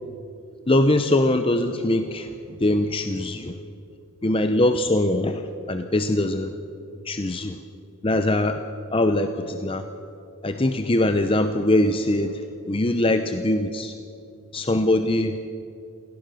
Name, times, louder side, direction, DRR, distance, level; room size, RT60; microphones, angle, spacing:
voice 1, 0.7-3.6 4.2-6.5 7.0-7.6 8.0-8.6 8.9-9.9 10.4-13.9 14.5-15.4, left 1 dB, 25° left, 8 dB, 0.7 m, -22 dB
27.0 x 17.5 x 6.4 m, 2.8 s
head